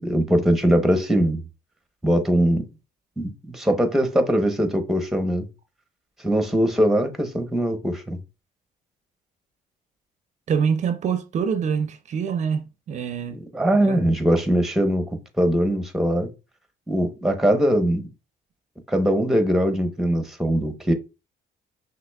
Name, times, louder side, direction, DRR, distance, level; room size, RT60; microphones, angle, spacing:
voice 1, 0.0-1.4 2.0-2.6 3.2-5.5 6.2-8.2 13.5-15.1 15.4-16.3 16.9-18.0 18.9-20.9, equal, ahead, 0.8 m, -21 dB
voice 2, 10.5-13.4 13.8-14.0, right 6 dB, 45° right, 0.5 m, -25 dB
5.8 x 3.0 x 2.3 m
cardioid pair, 110°, 17 cm